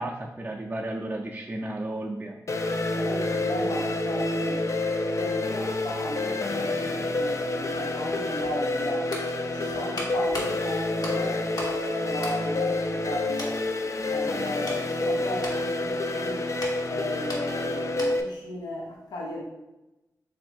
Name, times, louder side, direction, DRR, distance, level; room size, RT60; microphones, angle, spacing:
voice 1, 0.0-2.4, right 1 dB, 25° right, -1 dB, 0.4 m, -33 dB
sound 1, 2.5-18.2, left 2 dB, 45° left, 0.4 m, -28 dB
voice 2, 2.9-4.7 5.2-9.1 9.5-13.7 14.0-16.5 16.8-19.4, left 1 dB, 85° left, -2 dB, 0.6 m, -35 dB
sound 2, 9.1-11.8 12.1-13.1 13.4-13.6 14.2-18.4 18.7-18.9, left 1 dB, 65° left, 1.1 m, -40 dB
3.3 x 2.6 x 4.3 m, 0.97 s
cardioid pair, 50°, 7 cm